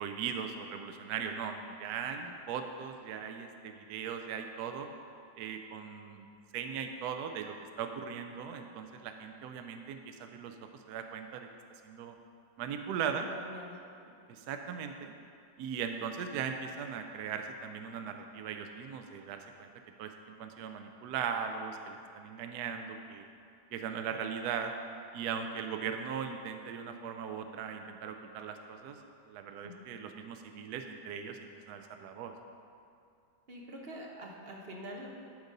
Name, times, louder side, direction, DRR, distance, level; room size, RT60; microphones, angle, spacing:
voice 1, 0.0-4.9 5.4-6.3 6.5-11.5 11.8-12.1 12.6-13.3 14.3-15.1 15.6-19.7 20.0-20.1 20.4-23.2 23.7-24.7 25.1-29.0 29.3-32.3, right 7 dB, 75° right, 5 dB, 1.1 m, -39 dB
voice 2, 13.1-13.8 29.6-29.8 33.5-35.1, equal, 40° right, -1 dB, 1.1 m, -45 dB
12.0 x 4.0 x 5.3 m, 2.5 s
omnidirectional pair, 1.8 m